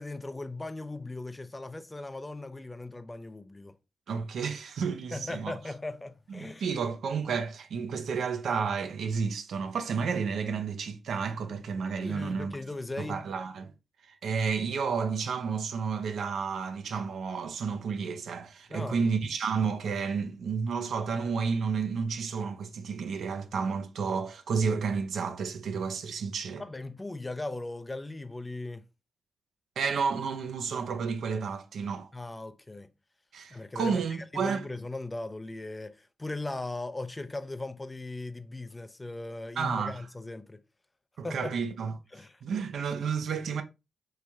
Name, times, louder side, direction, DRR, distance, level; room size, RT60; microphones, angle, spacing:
voice 1, 0.0-3.7 5.1-6.7 12.0-13.2 18.7-19.1 26.6-28.8 32.1-32.9 33.5-40.6 41.2-41.5 42.1-42.4, left 2 dB, 25° left, 0.5 m, -38 dB
voice 2, 4.1-5.5 6.3-12.6 13.0-13.7 14.0-26.6 29.8-32.1 33.3-34.7 39.6-40.0 41.2-41.9 42.4-43.6, right 5 dB, 70° right, 0.5 m, -31 dB
3.2 x 2.6 x 3.3 m
hypercardioid pair, 40°, 0 cm